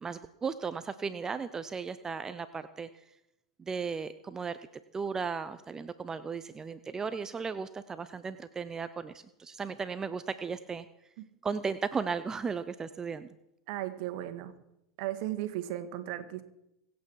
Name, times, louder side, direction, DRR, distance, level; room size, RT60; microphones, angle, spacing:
voice 1, 0.0-2.9 3.6-4.6 4.9-10.9 11.4-13.3, right 5 dB, 20° right, 13 dB, 0.6 m, -35 dB
voice 2, 13.7-14.5 15.0-16.4, right 13 dB, 60° right, 9 dB, 1.8 m, -36 dB
25.0 x 8.3 x 4.7 m, 0.87 s
hypercardioid pair, 90°, 3 cm